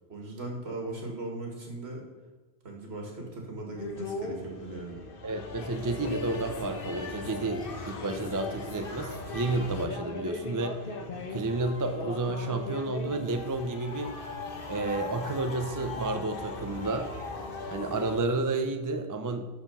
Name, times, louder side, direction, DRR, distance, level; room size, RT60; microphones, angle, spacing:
voice 1, 0.1-2.0 2.6-5.0, right 2 dB, 70° right, 0 dB, 2.1 m, -38 dB
sound 1, 3.8-18.2, left 3 dB, 60° left, 1.1 m, -38 dB
voice 2, 5.2-10.8 11.3-14.2 14.7-17.1 17.7-19.5, right 2 dB, 25° right, 7 dB, 0.5 m, -31 dB
12.0 x 4.4 x 5.4 m, 1.3 s
omnidirectional pair, 1.1 m